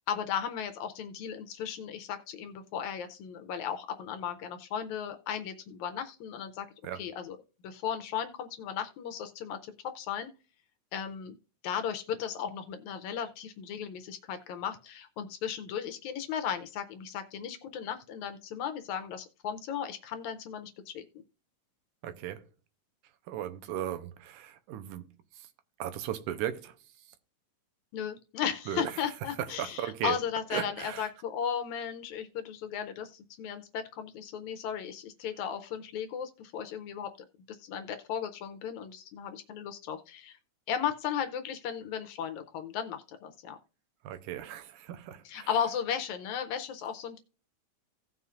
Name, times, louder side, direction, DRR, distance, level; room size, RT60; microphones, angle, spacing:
voice 1, 0.1-6.7 6.9-7.4 7.6-10.3 10.9-11.4 11.6-21.0 27.9-37.1 37.5-40.4 40.7-43.6 45.3-47.2, left 8 dB, 75° left, 1.9 m, -36 dB
voice 2, 22.0-22.4 23.3-25.1 25.8-26.7 28.7-28.9 29.6-30.2 30.5-31.1 44.0-45.5, right 11 dB, 80° right, 2.2 m, -36 dB
16.5 x 5.6 x 2.4 m
omnidirectional pair, 3.6 m